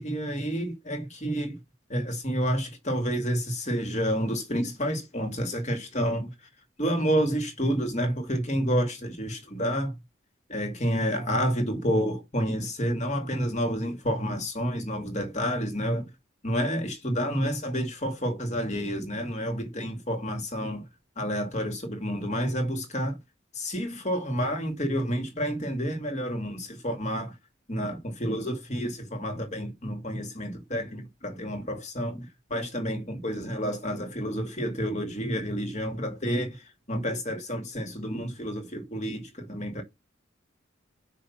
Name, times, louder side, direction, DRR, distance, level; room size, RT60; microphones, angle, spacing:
voice 1, 0.0-1.6 1.9-6.5 6.8-10.0 10.5-16.1 16.4-20.9 21.2-23.2 23.5-27.4 27.7-39.8, equal, 35° left, 2.3 m, -29 dB
6.1 x 5.8 x 7.2 m
head